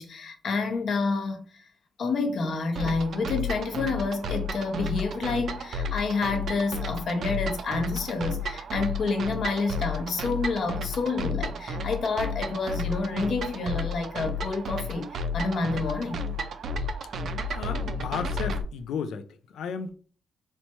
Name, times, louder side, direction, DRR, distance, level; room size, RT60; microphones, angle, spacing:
voice 1, 0.0-1.6 2.0-16.3, left 3 dB, 55° left, 0.7 m, -29 dB
sound 1, 2.8-18.6, left 2 dB, 60° right, 0.4 m, -32 dB
voice 2, 17.5-19.2 19.5-20.0, left 6 dB, 85° left, 0.3 m, -33 dB
4.1 x 2.2 x 2.9 m
cardioid pair, 120°, 0 cm